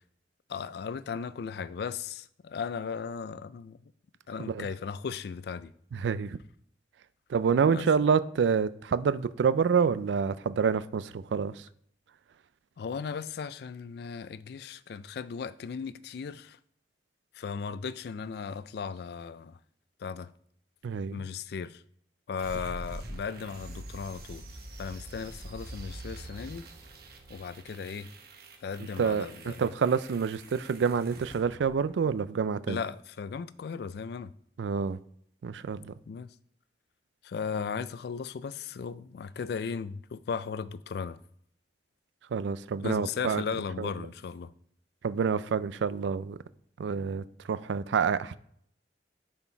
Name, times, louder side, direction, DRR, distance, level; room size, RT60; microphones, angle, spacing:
voice 1, 0.5-3.9 4.3-5.7 7.6-7.9 12.8-16.6 17.3-19.6 20.0-20.3 21.1-21.8 22.3-24.4 24.8-26.7 27.3-28.1 28.6-29.6 32.7-34.3 36.1-36.3 37.2-41.2 42.8-44.5, left 6 dB, 65° left, 0.3 m, -36 dB
voice 2, 7.3-11.5 20.8-21.2 29.0-32.8 34.6-35.0 35.4-35.9 42.3-43.4 43.8-43.9 45.0-46.4 46.8-48.4, right 6 dB, 90° right, 0.4 m, -27 dB
sound 1, 22.4-32.3, right 1 dB, 60° right, 1.0 m, -45 dB
7.0 x 4.3 x 4.5 m
head